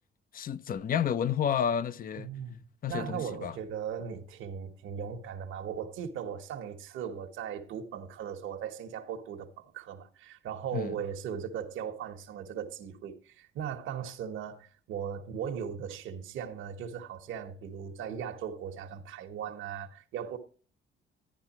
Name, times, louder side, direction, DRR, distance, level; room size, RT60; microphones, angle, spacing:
voice 1, 0.3-2.3 2.8-3.5 10.7-10.9, left 8 dB, 45° left, 0.6 m, -30 dB
voice 2, 2.2-20.4, right 8 dB, 85° right, 1.2 m, -38 dB
11.0 x 11.0 x 3.0 m
cardioid pair, 90°, 20 cm